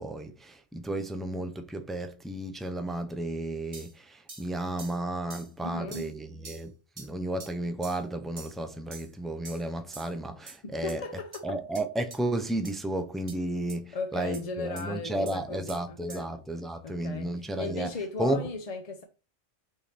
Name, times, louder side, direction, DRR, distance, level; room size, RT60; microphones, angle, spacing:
voice 1, 0.0-11.0 11.4-18.5, right 1 dB, ahead, 0.3 m, -33 dB
sound 1, 3.7-3.9 4.3-4.5 4.8-5.0 5.3-5.5 5.9-6.1 6.4-6.6 7.0-7.1 7.4-7.5 7.8-8.0 8.4-8.6 8.9-9.1 9.4-9.6 9.9-10.1 10.5-10.6 10.9-11.0 11.3-11.4 11.7-11.8 12.1-12.2 12.6-12.7 13.3-13.4 13.7-13.8 14.3-14.4 14.8-14.9 15.3-15.4 15.7-15.8 16.1-16.2, right 4 dB, 35° right, 0.8 m, -45 dB
voice 2, 5.6-6.1 10.6-11.6 13.9-16.3 16.8-19.0, left 3 dB, 40° left, 0.6 m, -37 dB
6.7 x 3.3 x 4.3 m
omnidirectional pair, 1.1 m